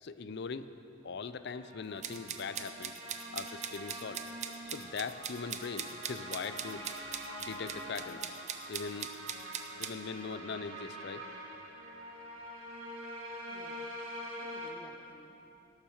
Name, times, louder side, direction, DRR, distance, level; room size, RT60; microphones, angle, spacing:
voice 1, 0.0-0.8 1.0-2.9 3.3-4.2 4.6-6.9 7.4-8.3 8.7-9.1 9.8-11.3, left 5 dB, 55° left, 13 dB, 0.5 m, -41 dB
sound 1, 1.3-14.7, equal, 80° right, 1.9 m, -45 dB
sound 2, 2.0-9.9, right 8 dB, 35° right, 0.6 m, -41 dB
voice 2, 13.5-14.0 14.3-15.5, equal, 25° left, 4 dB, 0.9 m, -57 dB
17.0 x 7.3 x 6.4 m, 3.0 s
head